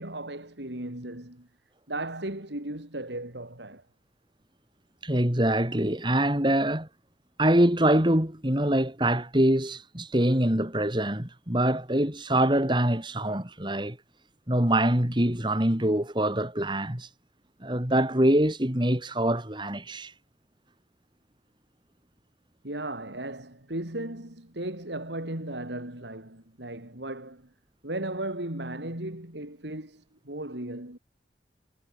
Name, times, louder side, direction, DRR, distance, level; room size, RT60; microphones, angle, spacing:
voice 1, 0.0-1.5 1.9-3.8 22.6-27.5 27.8-31.0, right 1 dB, 75° right, 4.3 m, -36 dB
voice 2, 5.0-6.9 7.4-14.0 14.5-17.1 17.6-20.1, right 1 dB, 25° right, 3.4 m, -24 dB
head